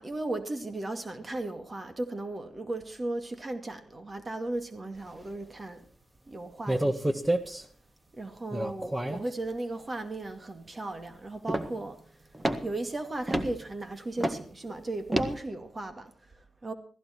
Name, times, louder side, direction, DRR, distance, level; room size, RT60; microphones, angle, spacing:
voice 1, 0.0-5.9 6.3-7.2 8.1-12.0 12.6-16.7, right 2 dB, 35° right, 2.3 m, -36 dB
sound 1, 6.7-7.6 8.5-9.3 11.5-11.8 12.3-12.8 13.3-13.6 14.2-14.4 15.1-15.4, right 1 dB, 20° right, 1.7 m, -28 dB
15.5 x 15.5 x 4.5 m
cardioid pair, 55°, 0 cm